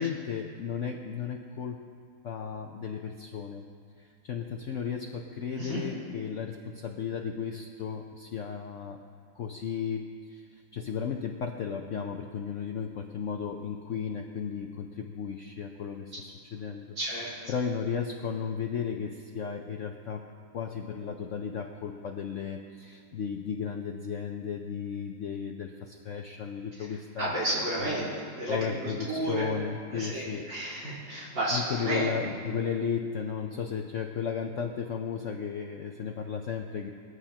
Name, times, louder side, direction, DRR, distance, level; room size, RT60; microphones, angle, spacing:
voice 1, 0.0-1.8 2.2-3.7 4.0-9.0 9.4-17.0 17.5-20.3 20.5-27.3 27.8-28.1 28.5-30.5 31.5-36.9, left 7 dB, 70° left, 4 dB, 0.7 m, -34 dB
voice 2, 16.9-17.5 26.8-26.9 27.2-29.5 29.9-32.1, right 1 dB, 75° right, -7 dB, 5.1 m, -32 dB
20.0 x 14.5 x 2.9 m, 2.2 s
omnidirectional pair, 2.0 m